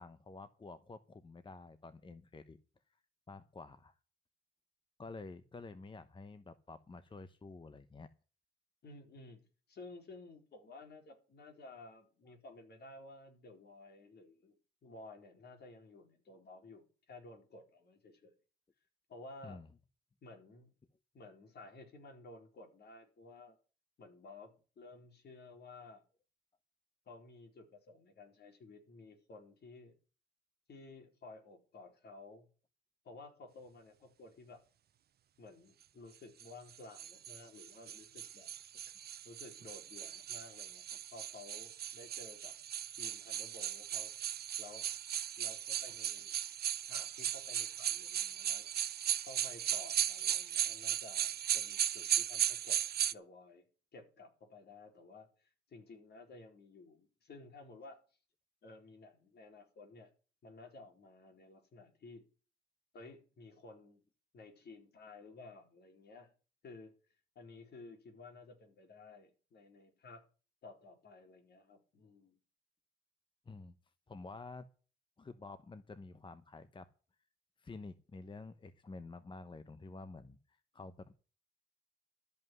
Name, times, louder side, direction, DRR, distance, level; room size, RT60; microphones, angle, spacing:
voice 1, 0.0-2.6 2.9-3.0 3.3-3.9 5.0-8.1 12.3-12.4 19.4-19.7 31.8-31.9 37.4-37.5 73.5-73.7 74.1-74.7 75.2-76.9 77.6-81.1, left 3 dB, 25° left, 0.9 m, -50 dB
voice 2, 8.8-14.6 14.8-18.3 19.1-19.6 20.2-20.7 21.1-23.6 24.0-26.0 27.1-29.9 30.7-32.5 33.0-34.6 35.4-38.5 39.2-42.5 43.0-44.1 44.6-44.9 45.4-46.3 46.8-48.7 49.2-52.8 53.1-53.7 53.9-58.0 58.6-60.1 60.4-62.2 62.9-64.0 64.3-66.3 66.6-66.9 67.3-70.2 70.6-72.4, left 2 dB, 55° left, 4.3 m, -54 dB
sound 1, 36.4-53.1, right 10 dB, 50° right, 0.6 m, -37 dB
13.0 x 5.6 x 9.4 m
cardioid pair, 90°, 20 cm